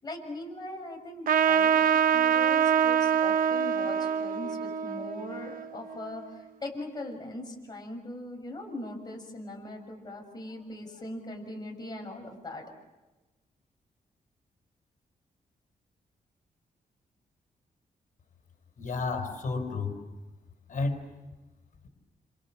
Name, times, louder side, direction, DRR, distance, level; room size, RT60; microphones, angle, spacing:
voice 1, 0.0-12.7, left 1 dB, 30° left, 1 dB, 6.7 m, -40 dB
Trumpet, 1.3-6.3, right 8 dB, 70° right, 1.0 m, -25 dB
voice 2, 18.8-19.9 20.7-21.1, left 3 dB, 60° left, 5 dB, 5.5 m, -31 dB
28.5 x 27.0 x 7.6 m, 1.1 s
wide cardioid pair, 120°, 15 cm